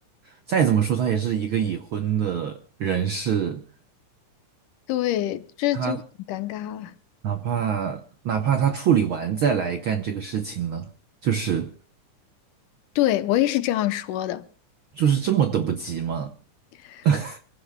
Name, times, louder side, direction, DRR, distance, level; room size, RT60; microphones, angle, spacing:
voice 1, 0.2-3.6 5.7-6.0 7.2-10.9 11.2-11.7 14.9-16.3 17.0-17.4, right 8 dB, 80° right, 1.1 m, -24 dB
voice 2, 4.9-6.0 6.3-6.9 13.0-14.4 16.8-17.1, left 14 dB, 90° left, 2.5 m, -25 dB
27.0 x 16.5 x 2.3 m
omnidirectional pair, 3.6 m